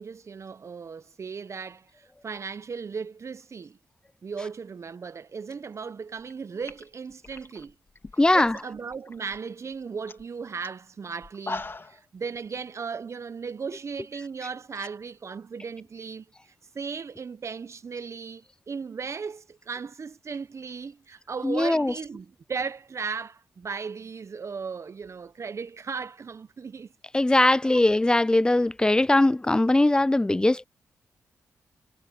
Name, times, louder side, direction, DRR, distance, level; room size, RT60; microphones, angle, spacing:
voice 1, 0.0-3.8 4.2-7.7 8.3-26.9 27.7-27.8, right 5 dB, 55° right, 0.8 m, -36 dB
sound 1, 6.2-6.3 6.6-8.6 8.9-9.4 9.7-9.8 10.1-10.3 10.6-10.7 11.2-12.0, left 3 dB, 40° left, 3.4 m, -39 dB
voice 2, 8.2-8.6 21.4-21.9 27.1-30.6, left 2 dB, 15° left, 0.3 m, -20 dB
supercardioid pair, 40°, 6 cm